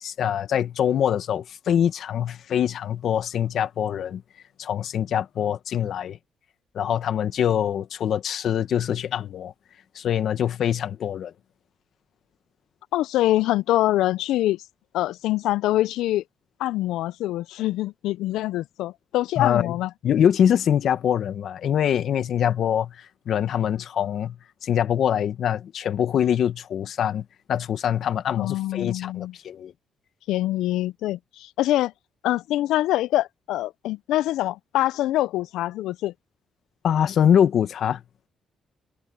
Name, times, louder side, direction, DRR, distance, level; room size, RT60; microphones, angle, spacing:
voice 1, 0.0-4.2 4.6-6.2 6.7-9.5 9.9-11.3 19.4-19.7 20.0-24.4 24.6-29.7 36.8-38.0, left 9 dB, 65° left, 1.3 m, -24 dB
voice 2, 12.9-14.6 14.9-16.2 16.6-19.9 28.4-29.3 30.3-31.9 32.2-36.1, left 15 dB, 90° left, 0.4 m, -24 dB
cardioid pair, 90°, 0 cm